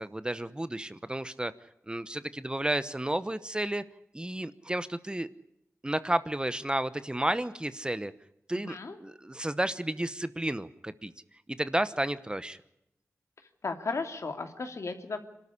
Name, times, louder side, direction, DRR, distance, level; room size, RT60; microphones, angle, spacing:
voice 1, 0.0-1.5 1.9-3.8 4.1-5.3 5.8-8.1 8.5-8.8 9.0-11.1 11.6-12.6, right 1 dB, 15° right, 14 dB, 1.0 m, -32 dB
voice 2, 8.5-9.0 13.6-15.2, left 3 dB, 65° left, 6 dB, 2.7 m, -35 dB
26.5 x 13.0 x 9.8 m, 0.83 s
wide cardioid pair, 75°, 5 cm